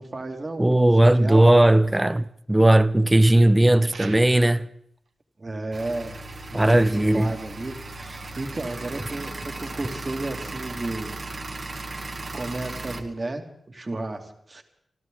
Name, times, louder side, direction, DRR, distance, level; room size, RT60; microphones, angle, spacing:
voice 1, 0.0-1.6 5.4-6.2 6.5-11.2 12.3-14.6, right 2 dB, 35° right, 2.1 m, -33 dB
voice 2, 0.6-4.7 6.5-7.3, right 1 dB, 15° right, 0.5 m, -17 dB
sound 1, 3.9-4.6, right 4 dB, 85° right, 1.5 m, -41 dB
sound 2, 5.7-13.0, right 2 dB, 55° right, 1.6 m, -36 dB
27.0 x 13.0 x 3.8 m
cardioid pair, 70°, 0 cm